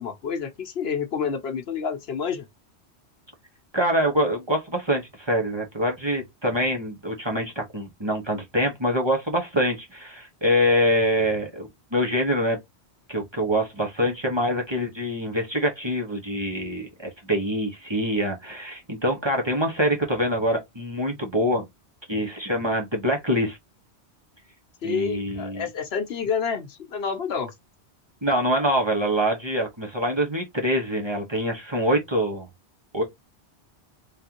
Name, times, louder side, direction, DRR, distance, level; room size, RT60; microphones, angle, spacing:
voice 1, 0.0-2.4 24.8-27.5, left 6 dB, 65° left, 1.0 m, -29 dB
voice 2, 3.7-12.6 13.1-21.6 22.1-23.6 24.8-25.7 28.2-32.5 32.9-33.0, equal, 25° right, 1.1 m, -25 dB
3.7 x 3.3 x 2.9 m
omnidirectional pair, 1.1 m